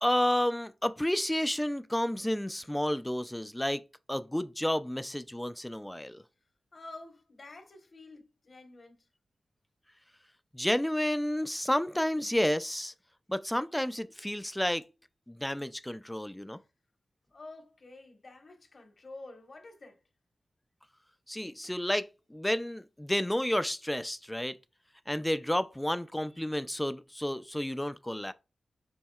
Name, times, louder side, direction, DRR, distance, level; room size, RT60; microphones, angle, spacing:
voice 1, 0.0-3.8 4.1-6.2 10.5-12.9 13.3-14.8 15.3-16.6 21.3-24.6 25.1-28.3, left 1 dB, 10° left, 0.4 m, -31 dB
voice 2, 6.7-9.1 17.3-20.0, left 2 dB, 60° left, 1.3 m, -49 dB
7.1 x 2.7 x 2.4 m
cardioid pair, 40°, 0 cm